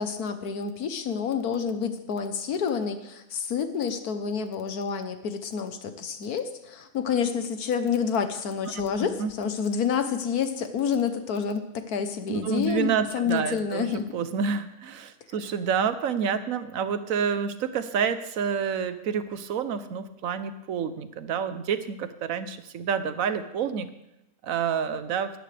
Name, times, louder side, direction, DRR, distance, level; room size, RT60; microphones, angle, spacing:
voice 1, 0.0-14.0, left 6 dB, 70° left, 9 dB, 1.5 m, -28 dB
voice 2, 8.7-9.3 12.3-23.9 24.4-25.3, right 7 dB, 60° right, 11 dB, 1.2 m, -28 dB
18.5 x 13.5 x 3.4 m, 0.90 s
omnidirectional pair, 1.7 m